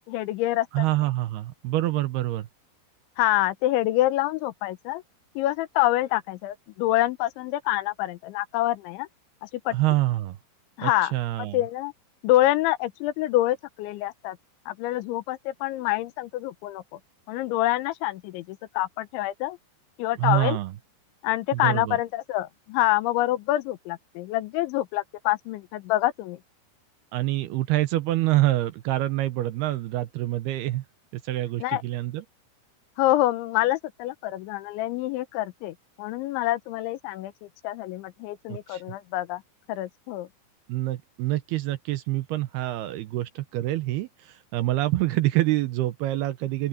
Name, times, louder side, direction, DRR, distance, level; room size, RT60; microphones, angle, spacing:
voice 1, 0.1-0.9 3.2-5.0 5.4-9.1 9.4-9.8 10.8-11.9 12.2-14.4 14.7-17.0 17.3-19.6 20.0-20.6 21.2-26.4 31.6-31.8 33.0-39.4 39.7-40.3, left 15 dB, 90° left, 3.4 m, -26 dB
voice 2, 0.7-2.5 9.7-10.4 10.8-11.6 20.2-20.7 21.5-22.0 27.1-30.8 31.1-32.2 38.5-38.8 40.7-46.7, right 16 dB, 75° right, 2.6 m, -26 dB
open air
omnidirectional pair, 5.2 m